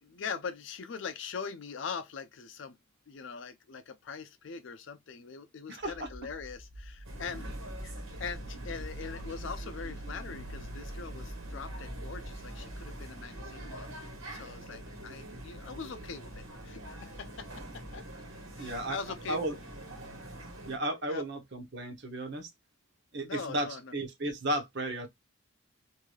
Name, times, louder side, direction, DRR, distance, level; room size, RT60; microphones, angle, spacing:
voice 1, 0.0-2.8 3.1-7.5 7.8-13.9 14.3-18.0 18.6-19.4 21.0-21.2 23.2-23.9, left 5 dB, 60° left, 0.5 m, -42 dB
voice 2, 5.7-6.1 18.6-19.0 19.3-19.6 20.7-22.5 23.1-25.1, right 1 dB, 55° right, 0.8 m, -34 dB
sound 1, 5.8-18.0, right 1 dB, 10° left, 0.5 m, -45 dB
sound 2, 7.0-20.8, right 1 dB, 75° right, 1.3 m, -46 dB
3.2 x 2.6 x 2.3 m
head